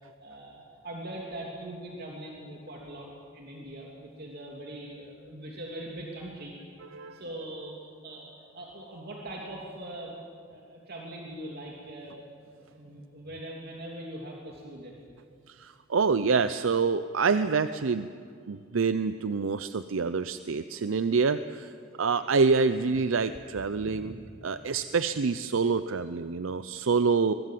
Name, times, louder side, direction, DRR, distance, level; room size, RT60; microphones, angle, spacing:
voice 1, 0.2-6.5 7.0-12.2 12.5-14.9 21.9-22.3 23.7-24.2, right 1 dB, 55° right, -2 dB, 3.0 m, -42 dB
voice 2, 15.5-18.1 18.5-21.7 22.0-24.1 24.4-27.3, right 4 dB, 80° right, 12 dB, 0.6 m, -26 dB
23.0 x 21.5 x 7.6 m, 2.3 s
head